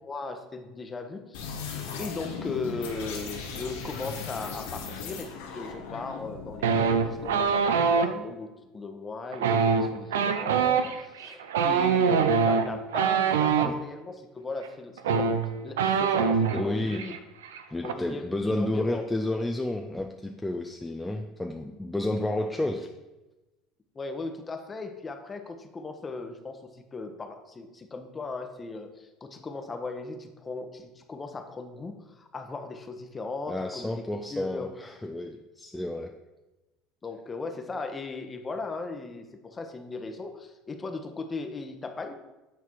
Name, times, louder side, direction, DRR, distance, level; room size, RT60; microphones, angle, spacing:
voice 1, 0.0-17.1 17.8-19.0 23.9-34.7 37.0-42.1, left 3 dB, 25° left, 6 dB, 1.0 m, -38 dB
sound 1, 1.3-7.5, left 5 dB, 80° left, 1.2 m, -38 dB
sound 2, 6.6-8.1 9.3-13.7 14.6-14.7 15.0-16.6 16.9-17.2 17.4-17.9, right 6 dB, 90° right, 0.5 m, -24 dB
voice 2, 16.5-17.0 17.7-22.9 33.5-36.1, left 1 dB, 10° left, 3 dB, 0.5 m, -31 dB
8.3 x 4.1 x 4.6 m, 1.1 s
hypercardioid pair, 85°, 0 cm